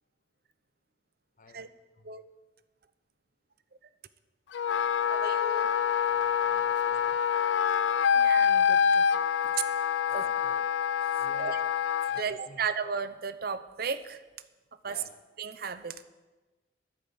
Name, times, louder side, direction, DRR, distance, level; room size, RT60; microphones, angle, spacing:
voice 1, 1.4-1.7 2.0-2.1 6.1-7.2 9.4-9.5 10.1-10.7 11.2-11.6 12.1-12.7 14.8-15.2, left 2 dB, 45° left, 10 dB, 0.9 m, -52 dB
Wind instrument woodwind instrument, 4.5-12.2, left 7 dB, 70° left, 0.4 m, -26 dB
voice 2, 5.1-5.7 7.3-7.4 8.1-9.4 10.1-10.3 11.4-11.6 12.2-14.2 14.8-15.0 15.4-16.0, right 5 dB, 55° right, 12 dB, 0.8 m, -35 dB
12.0 x 10.0 x 7.3 m, 1.2 s
head